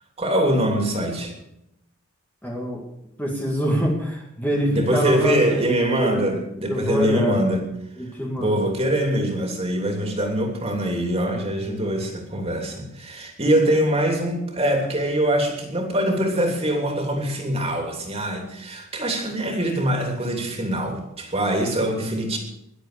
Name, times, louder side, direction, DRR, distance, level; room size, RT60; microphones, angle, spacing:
voice 1, 0.2-1.3 4.7-7.6 8.4-22.4, right 1 dB, 30° right, 2 dB, 3.1 m, -23 dB
voice 2, 2.4-2.8 3.2-7.5 8.0-8.7, equal, 10° left, -1 dB, 2.2 m, -25 dB
22.0 x 8.0 x 6.8 m, 0.82 s
head